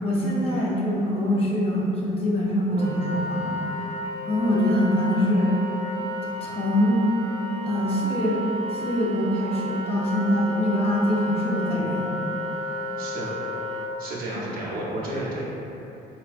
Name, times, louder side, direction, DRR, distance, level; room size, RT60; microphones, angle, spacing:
voice 1, 0.0-3.6 4.3-5.6 6.4-7.0 7.6-8.5 8.7-12.1 14.3-14.4, left 1 dB, 35° left, -5 dB, 0.7 m, -24 dB
Wind instrument woodwind instrument, 2.7-13.9, equal, 45° right, 0.4 m, -32 dB
voice 2, 13.0-13.3 14.0-15.4, right 1 dB, 60° right, -6 dB, 0.8 m, -31 dB
4.1 x 2.2 x 2.5 m, 3.0 s
cardioid pair, 110°, 17 cm